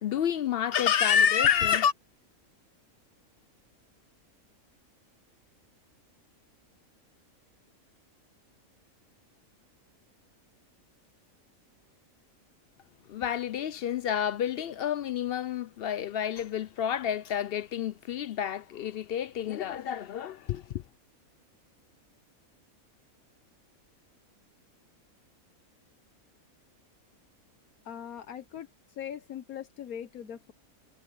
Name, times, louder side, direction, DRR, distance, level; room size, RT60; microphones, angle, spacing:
voice 1, 0.0-1.9 13.1-20.8, left 9 dB, 70° left, 0.5 m, -28 dB
voice 2, 27.8-30.5, left 9 dB, 85° left, 1.5 m, -41 dB
omnidirectional pair, 1.5 m